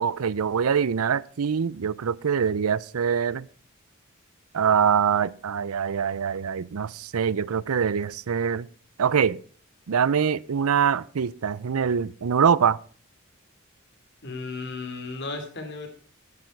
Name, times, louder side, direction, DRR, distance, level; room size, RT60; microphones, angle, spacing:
voice 1, 0.0-3.5 4.5-8.7 9.0-9.4 9.9-12.8, right 7 dB, 85° right, 0.5 m, -24 dB
voice 2, 14.2-15.9, left 3 dB, 55° left, 3.0 m, -34 dB
13.5 x 9.9 x 4.5 m
head